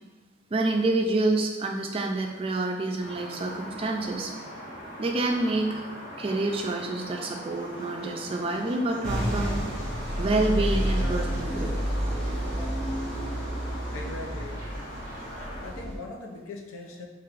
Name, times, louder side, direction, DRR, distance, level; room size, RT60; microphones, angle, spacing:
voice 1, 0.5-4.3 5.0-9.7 10.2-11.8, right 2 dB, 25° right, 2 dB, 0.3 m, -28 dB
sound 1, 3.0-15.7, equal, 45° left, 0.9 m, -41 dB
sound 2, 7.2-15.4, equal, 25° left, 1.1 m, -48 dB
sound 3, 9.0-16.0, equal, 5° left, 1.0 m, -30 dB
voice 2, 13.9-14.7 15.6-17.1, left 2 dB, 90° left, 2 dB, 0.5 m, -40 dB
4.4 x 3.0 x 2.5 m, 1.3 s
head